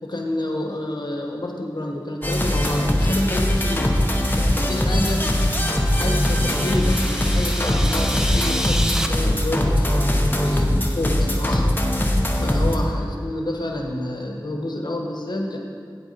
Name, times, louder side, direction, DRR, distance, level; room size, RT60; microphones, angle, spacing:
voice 1, 0.0-5.6 5.9-11.8 12.3-15.6, left 1 dB, 65° left, 1 dB, 1.1 m, -29 dB
sound 1, 2.2-12.8, left 1 dB, 25° left, 1.0 m, -21 dB
sound 2, 5.0-9.1, equal, 5° right, 0.6 m, -31 dB
8.7 x 8.0 x 4.3 m, 2.2 s
wide cardioid pair, 55°, 8 cm